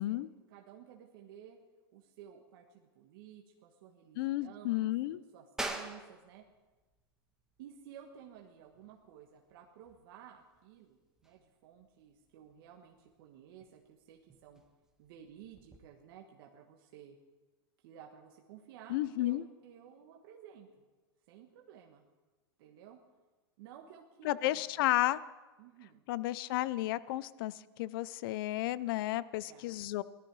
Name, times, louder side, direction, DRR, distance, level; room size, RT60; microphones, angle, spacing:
voice 1, 0.1-1.6 1.9-6.4 7.6-14.6 15.0-17.2 17.8-20.8 21.3-22.0 22.6-23.0 23.6-24.9 25.6-26.0 29.4-29.7, right 9 dB, 60° right, 1 dB, 1.5 m, -54 dB
voice 2, 4.2-5.2 18.9-19.4 24.2-25.2 26.1-30.0, left 16 dB, 60° left, 18 dB, 0.6 m, -32 dB
sound 1, 5.6-15.8, right 2 dB, 5° right, 1.4 m, -48 dB
18.0 x 13.0 x 4.8 m, 1.2 s
hypercardioid pair, 125°, 13 cm